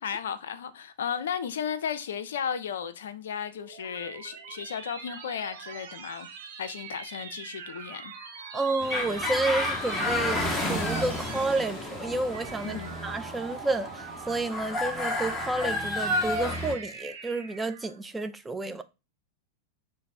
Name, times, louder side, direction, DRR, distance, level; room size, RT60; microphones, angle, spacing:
voice 1, 0.0-6.3 6.6-8.1 12.6-13.0, left 7 dB, 60° left, 0.4 m, -34 dB
sound 1, 3.3-18.0, right 6 dB, 55° right, 0.7 m, -43 dB
voice 2, 8.5-10.4 10.7-18.8, right 2 dB, 10° right, 0.3 m, -30 dB
sound 2, 8.8-16.7, left 1 dB, 10° left, 0.7 m, -31 dB
3.1 x 2.0 x 4.0 m
figure-of-eight pair, 90°, 0 cm